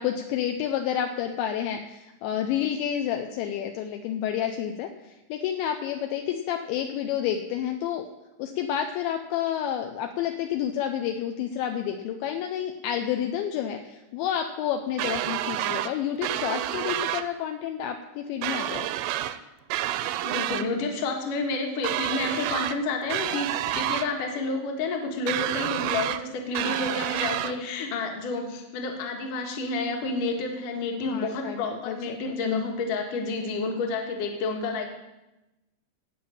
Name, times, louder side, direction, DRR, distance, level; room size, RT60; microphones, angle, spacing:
voice 1, 0.0-8.1 8.4-18.9 31.0-32.7, left 9 dB, 80° left, 5 dB, 2.8 m, -30 dB
sound 1, 15.0-15.9 16.2-17.3 18.4-19.4 19.7-20.7 21.8-22.8 23.1-24.1 25.3-26.2 26.5-27.5, right 13 dB, 85° right, 3.0 m, -29 dB
voice 2, 19.9-34.9, left 3 dB, 55° left, 2 dB, 2.6 m, -30 dB
16.0 x 5.7 x 8.8 m, 0.99 s
omnidirectional pair, 5.5 m